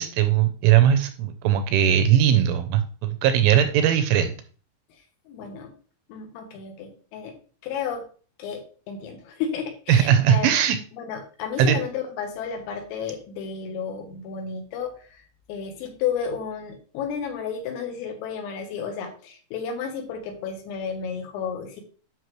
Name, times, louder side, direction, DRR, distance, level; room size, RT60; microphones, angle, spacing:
voice 1, 0.0-4.3 9.9-10.8 11.6-11.8, right 9 dB, 80° right, 9 dB, 2.8 m, -19 dB
voice 2, 5.3-5.7 6.1-7.3 7.6-8.0 8.4-8.6 8.9-10.6 10.9-15.2 15.5-21.8, left 7 dB, 80° left, 3 dB, 3.8 m, -32 dB
9.4 x 6.2 x 3.1 m, 0.39 s
omnidirectional pair, 6.0 m